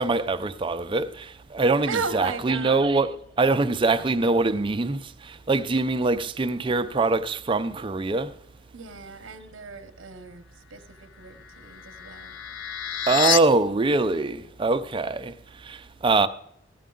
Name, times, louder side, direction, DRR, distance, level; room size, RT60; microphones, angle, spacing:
voice 1, 0.0-3.1 3.4-8.3 13.1-15.3 15.6-16.3, right 3 dB, 25° right, 0.4 m, -23 dB
voice 2, 1.9-2.9 8.7-10.4 10.7-12.4, right 4 dB, 70° right, 0.8 m, -35 dB
sound 1, 11.1-13.4, left 8 dB, 60° left, 0.5 m, -29 dB
13.5 x 9.4 x 3.8 m
head